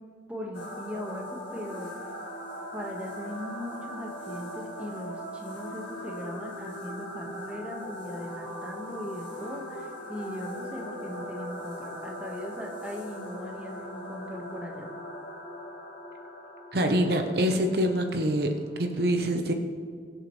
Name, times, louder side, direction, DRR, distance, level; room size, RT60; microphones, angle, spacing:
voice 1, 0.3-1.9 2.7-14.9, left 1 dB, 5° right, -1 dB, 1.5 m, -39 dB
sound 1, 0.5-19.0, equal, 75° left, 1.9 m, -40 dB
voice 2, 16.7-18.5 18.8-19.5, equal, 55° right, 4 dB, 0.9 m, -25 dB
21.5 x 7.6 x 3.3 m, 2.1 s
head